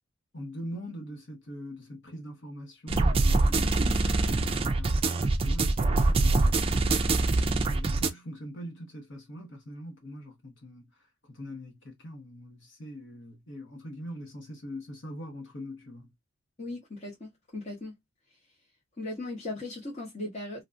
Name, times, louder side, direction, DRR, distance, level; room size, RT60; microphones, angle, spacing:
voice 1, 0.3-6.6 7.7-10.9 11.3-16.1, equal, 65° left, 1.0 m, -42 dB
sound 1, 2.9-8.1, right 3 dB, 30° right, 0.4 m, -24 dB
voice 2, 4.1-4.7 16.6-17.9 19.0-20.6, left 2 dB, 35° left, 1.1 m, -38 dB
2.8 x 2.4 x 2.5 m
head